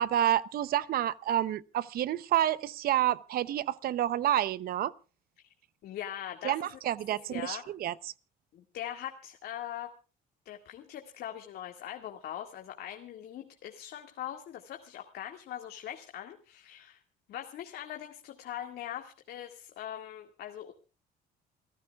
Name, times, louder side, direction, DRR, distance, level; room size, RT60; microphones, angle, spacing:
voice 1, 0.0-4.9 6.4-8.1, right 12 dB, 60° right, 0.8 m, -29 dB
voice 2, 5.8-6.7 7.3-7.6 8.5-9.9 10.5-17.0 17.3-20.7, left 11 dB, 70° left, 2.1 m, -41 dB
28.5 x 15.0 x 2.4 m
cardioid pair, 110°, 17 cm